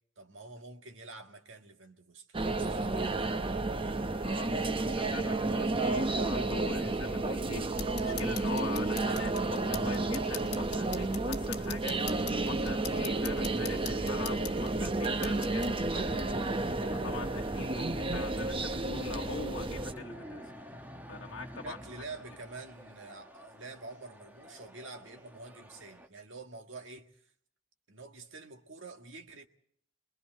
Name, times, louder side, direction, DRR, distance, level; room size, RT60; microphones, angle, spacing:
voice 1, 0.2-3.4 13.0-13.5 21.6-27.1 27.9-29.5, right 3 dB, 70° right, 1.7 m, -47 dB
sound 1, 2.3-19.9, right 2 dB, 25° right, 0.7 m, -31 dB
voice 2, 4.2-20.4 21.1-21.8, left 4 dB, 85° left, 1.1 m, -44 dB
sound 2, 7.7-15.7, left 7 dB, 60° left, 1.4 m, -44 dB
sound 3, 16.0-26.1, equal, 10° right, 1.1 m, -47 dB
29.5 x 21.5 x 4.5 m
head